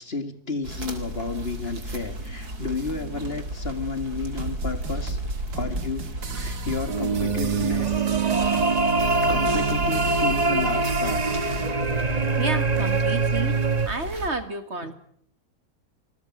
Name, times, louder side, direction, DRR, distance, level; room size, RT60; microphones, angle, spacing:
voice 1, 0.0-5.2 5.5-8.1 9.2-11.2, left 4 dB, 40° left, 10 dB, 2.4 m, -32 dB
sound 1, 0.6-14.3, right 1 dB, 70° right, 4.1 m, -34 dB
sound 2, 4.4-11.7, right 3 dB, 90° right, 2.5 m, -36 dB
sound 3, 6.9-13.9, right 3 dB, 30° right, 1.2 m, -24 dB
voice 2, 11.9-13.6 13.9-14.9, right 3 dB, 45° right, 11 dB, 2.1 m, -31 dB
26.5 x 20.5 x 6.2 m, 0.63 s
omnidirectional pair, 1.7 m